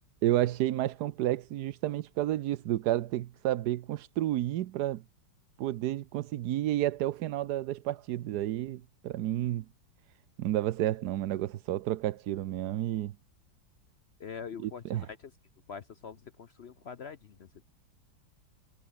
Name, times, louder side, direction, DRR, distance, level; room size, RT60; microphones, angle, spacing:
voice 1, 0.2-5.0 5.6-9.7 10.4-13.2 14.6-15.1, right 13 dB, 65° right, 1.1 m, -31 dB
voice 2, 14.2-15.3 15.7-17.7, left 6 dB, 70° left, 0.6 m, -44 dB
omnidirectional pair, 2.2 m